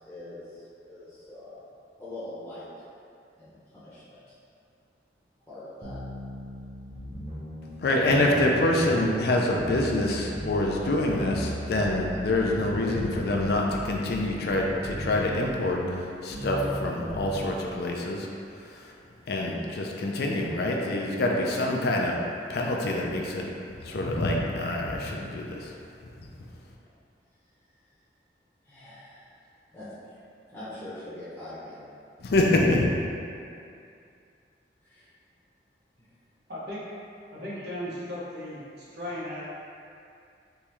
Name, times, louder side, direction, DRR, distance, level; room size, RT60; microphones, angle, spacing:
voice 1, 0.0-1.6 2.0-2.7 3.4-4.3 5.5-6.0 28.6-29.3 29.7-30.2 30.5-31.8 34.8-35.1 36.0-36.1, left 1 dB, 10° left, -13 dB, 0.7 m, -43 dB
sound 1, 5.8-17.6, right 1 dB, 30° right, 0.6 m, -37 dB
voice 2, 7.8-18.3 18.6-18.9 19.3-22.2 22.5-23.5 23.8-25.7 32.2-32.9, left 1 dB, 60° left, -1 dB, 0.4 m, -26 dB
voice 3, 36.5-36.8 37.3-39.4, left 1 dB, 65° right, -7 dB, 0.9 m, -36 dB
3.5 x 3.0 x 3.0 m, 2.4 s
head